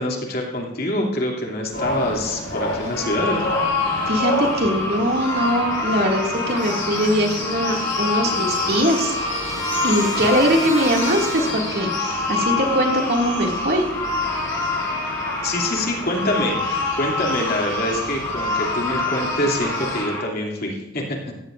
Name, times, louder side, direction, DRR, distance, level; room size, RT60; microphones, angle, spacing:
voice 1, 0.0-3.5 15.4-21.2, left 1 dB, 50° left, -1 dB, 2.7 m, -25 dB
sound 1, 1.7-20.0, left 1 dB, 80° left, 5.6 m, -32 dB
sound 2, 2.9-20.2, left 3 dB, 15° left, 5.0 m, -26 dB
voice 2, 4.1-13.9, equal, 55° right, 0 dB, 2.3 m, -22 dB
Trumpet, 7.7-12.1, equal, 15° right, 5.2 m, -34 dB
17.5 x 15.0 x 2.6 m, 0.92 s
head